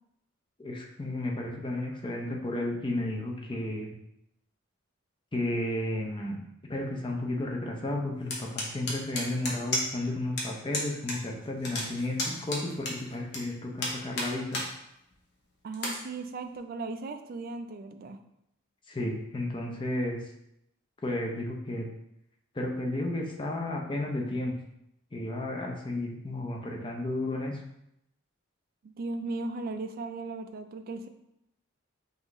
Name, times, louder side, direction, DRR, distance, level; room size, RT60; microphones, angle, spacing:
voice 1, 0.6-3.9 5.3-14.6 18.9-20.2 21.0-21.9 22.5-24.6 25.1-27.6, left 1 dB, 25° left, 1 dB, 0.6 m, -33 dB
sound 1, 8.3-10.1 10.4-10.5 10.7-11.2 11.4-13.4 13.8-14.7 15.1-15.2 15.7-16.0, left 2 dB, 55° left, 0.9 m, -32 dB
voice 2, 15.6-18.2 28.8-31.1, right 3 dB, 45° right, 8 dB, 0.3 m, -37 dB
5.4 x 2.6 x 3.0 m, 0.81 s
head